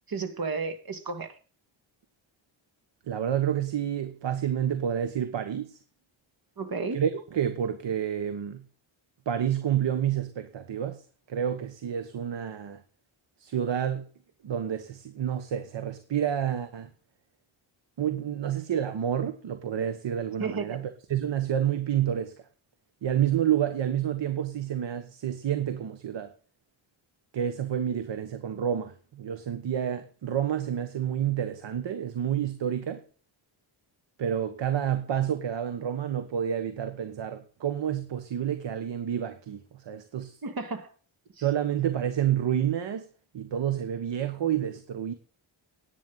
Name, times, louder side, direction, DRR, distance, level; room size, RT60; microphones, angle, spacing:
voice 1, 0.1-1.3 6.6-7.0 20.4-20.8 40.4-40.9 41.4-41.5, right 4 dB, 45° right, 2.2 m, -32 dB
voice 2, 3.1-5.8 6.9-8.6 9.2-11.0 11.3-12.8 13.4-14.0 14.4-16.9 18.0-22.3 23.0-26.3 27.3-33.0 34.2-40.4 41.4-43.1 43.3-45.1, right 9 dB, 60° right, 1.4 m, -29 dB
11.0 x 9.3 x 5.6 m
wide cardioid pair, 135°, 48 cm